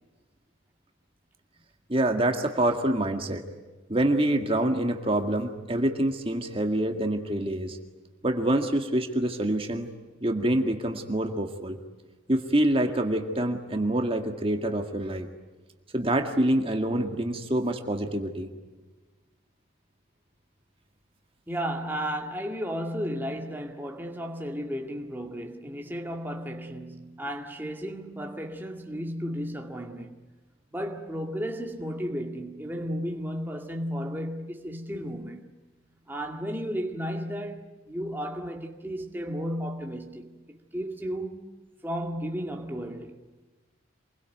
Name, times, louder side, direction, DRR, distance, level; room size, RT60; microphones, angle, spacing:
voice 1, 1.9-3.4 3.9-7.8 8.2-9.9 10.2-11.8 12.3-15.3 15.9-18.5, right 1 dB, 30° right, 2.0 m, -26 dB
voice 2, 21.5-30.2 30.7-35.5 36.1-41.5 41.8-43.2, equal, 10° right, 2.1 m, -34 dB
28.0 x 22.0 x 9.3 m
head